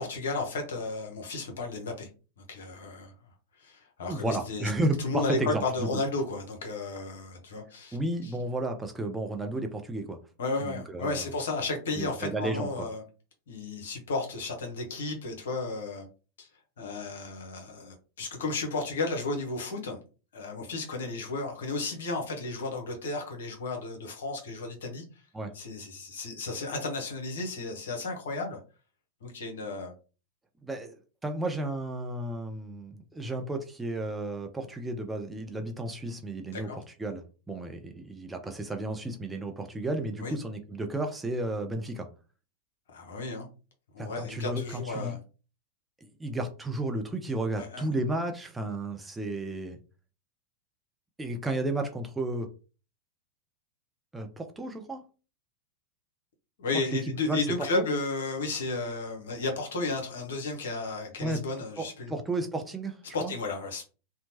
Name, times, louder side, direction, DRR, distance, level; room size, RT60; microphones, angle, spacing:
voice 1, 0.0-2.1 2.5-3.1 3.6-4.7 5.0-8.0 8.2-8.3 10.4-13.0 13.5-16.1 16.4-16.5 16.8-20.0 20.3-25.0 25.5-28.6 29.2-29.9 36.5-36.8 40.2-40.3 42.9-43.5 43.9-45.2 47.6-47.9 56.6-62.1 63.1-63.8, left 3 dB, 60° left, 3 dB, 0.9 m, -33 dB
voice 2, 4.1-5.9 7.9-10.2 10.6-11.3 12.0-12.9 25.3-25.5 30.6-36.7 37.0-42.1 44.0-45.2 46.0-49.8 51.2-52.5 54.1-55.0 57.2-57.8 61.2-61.4 61.8-63.3, right 2 dB, 10° right, 4 dB, 0.4 m, -33 dB
2.8 x 2.1 x 2.8 m, 0.35 s
figure-of-eight pair, 90°, 0 cm